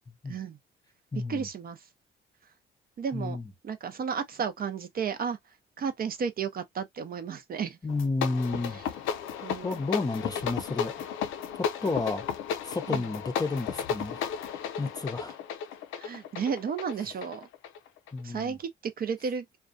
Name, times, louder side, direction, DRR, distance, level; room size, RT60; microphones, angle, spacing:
voice 1, 0.3-0.6 1.3-1.8 3.0-3.4 3.6-5.4 5.8-7.8 9.4-9.8 12.9-13.0 16.0-17.5 18.2-19.5, right 6 dB, 50° right, 0.5 m, -33 dB
voice 2, 1.1-1.5 3.1-3.5 7.8-8.8 9.6-10.9 11.6-12.3 12.6-14.3 14.8-15.4 18.1-18.6, left 3 dB, 20° left, 0.5 m, -31 dB
sound 1, 7.9-18.2, left 8 dB, 80° left, 0.5 m, -34 dB
2.3 x 2.2 x 2.4 m
cardioid pair, 90°, 20 cm